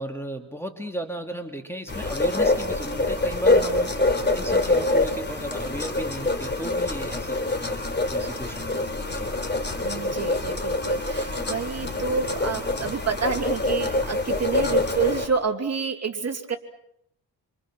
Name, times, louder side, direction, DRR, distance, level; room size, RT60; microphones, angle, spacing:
voice 1, 0.0-9.3 14.6-14.8, equal, 5° left, 5 dB, 2.4 m, -35 dB
sound 1, 1.9-15.3, left 2 dB, 25° left, 3.3 m, -25 dB
voice 2, 9.8-16.6, right 5 dB, 35° right, 4 dB, 3.0 m, -28 dB
27.5 x 26.5 x 6.2 m, 0.72 s
cardioid pair, 100°, 42 cm